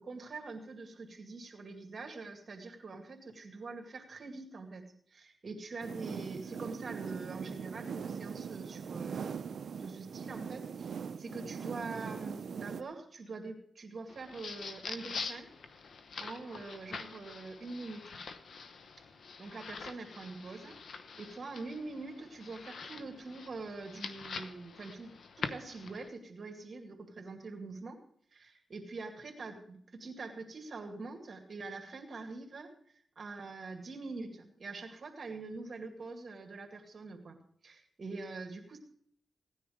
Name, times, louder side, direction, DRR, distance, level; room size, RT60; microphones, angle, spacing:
voice 1, 0.0-15.5 16.2-18.2 19.4-20.8 21.2-28.0 28.3-37.4 37.6-38.8, right 3 dB, 55° right, 3 dB, 2.3 m, -44 dB
sound 1, 5.8-12.8, right 6 dB, 75° right, 0.6 m, -41 dB
sound 2, 14.1-26.1, left 5 dB, 75° left, 1.0 m, -45 dB
17.0 x 10.0 x 5.0 m, 0.65 s
cardioid pair, 65°, 0 cm